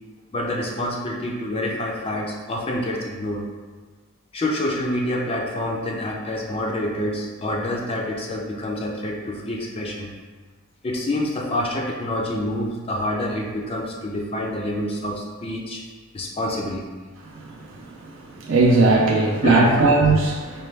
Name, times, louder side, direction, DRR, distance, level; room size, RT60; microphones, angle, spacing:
voice 1, 0.3-3.4 4.3-10.1 10.8-15.8 16.1-16.8 19.4-19.8, left 1 dB, 25° left, -1 dB, 0.4 m, -27 dB
voice 2, 18.4-20.7, right 3 dB, 65° right, -2 dB, 0.4 m, -18 dB
5.1 x 2.2 x 3.2 m, 1.4 s
head